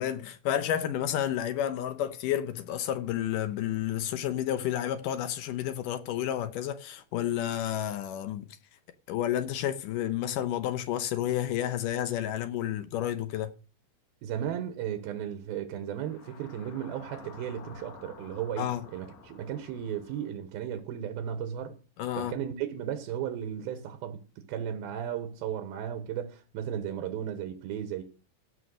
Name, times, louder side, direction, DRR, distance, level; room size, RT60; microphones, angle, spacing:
voice 1, 0.0-8.5 9.1-13.5 18.6-18.9 22.0-22.4, left 11 dB, 75° left, 2.2 m, -31 dB
voice 2, 14.2-21.7 22.2-24.2 24.5-28.0, right 9 dB, 85° right, 3.1 m, -35 dB
sound 1, 15.8-20.3, left 5 dB, 55° left, 2.4 m, -51 dB
15.5 x 5.8 x 6.5 m
omnidirectional pair, 4.3 m